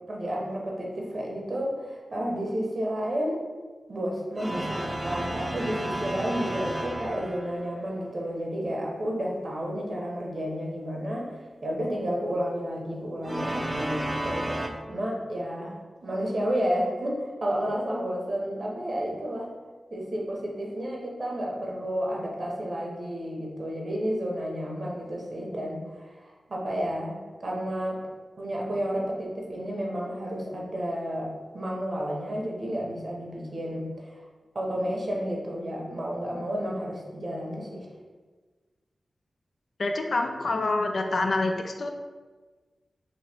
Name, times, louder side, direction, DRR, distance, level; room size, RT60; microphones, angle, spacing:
voice 1, 0.1-3.5 3.9-19.5 19.9-27.1 27.4-28.0 28.4-34.2 34.5-37.9, equal, 55° right, -2 dB, 1.0 m, -31 dB
sound 1, 4.3-7.7 13.2-14.7, right 1 dB, 20° right, 0.6 m, -32 dB
voice 2, 39.8-41.9, left 2 dB, 65° left, 3 dB, 0.4 m, -26 dB
3.1 x 2.8 x 4.3 m, 1.3 s
cardioid pair, 40°, 0 cm